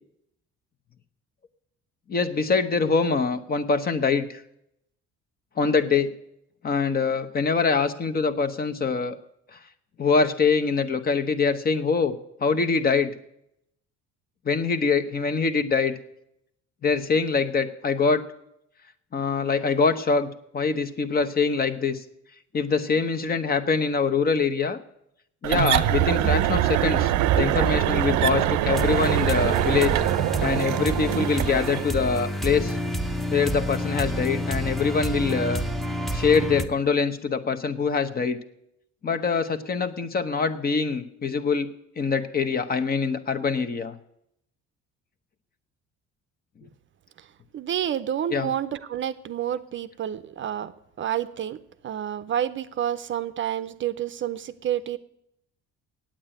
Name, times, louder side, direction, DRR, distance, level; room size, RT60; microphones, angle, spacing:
voice 1, 2.1-4.4 5.6-6.1 6.6-9.2 9.5-9.6 10.0-12.1 12.4-13.1 14.4-15.9 16.8-18.2 19.1-22.0 22.5-24.8 25.4-29.9 30.4-32.8 33.3-35.6 36.1-38.4 39.0-41.7 42.0-43.9 48.3-48.5, left 5 dB, 30° left, 9 dB, 0.9 m, -24 dB
sound 1, 25.4-31.9, right 13 dB, 75° right, 0.7 m, -23 dB
sound 2, 28.7-36.7, equal, ahead, 0.7 m, -29 dB
voice 2, 47.5-50.7 51.0-51.6 51.8-55.0, right 10 dB, 40° right, 12 dB, 0.6 m, -29 dB
8.8 x 8.7 x 8.9 m, 0.78 s
cardioid pair, 135°, 29 cm